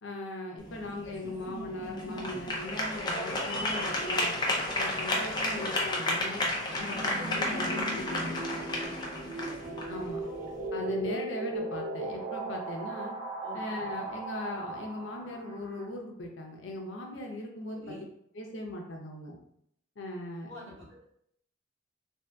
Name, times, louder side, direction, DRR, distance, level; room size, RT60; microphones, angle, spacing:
voice 1, 0.0-4.4 4.8-6.4 6.8-8.4 9.9-10.2 10.7-13.1 13.5-17.9 18.3-19.4 20.0-20.5, left 1 dB, 75° left, 1 dB, 0.6 m, -39 dB
sound 1, 0.6-10.7, left 1 dB, 20° left, 0.4 m, -32 dB
sound 2, 6.4-15.8, right 2 dB, 35° right, 0.6 m, -38 dB
voice 2, 9.2-10.0 10.2-10.3 13.4-13.6 17.7-18.0 20.5-21.0, left 1 dB, 75° right, -7 dB, 1.4 m, -47 dB
3.1 x 2.6 x 2.2 m, 0.72 s
head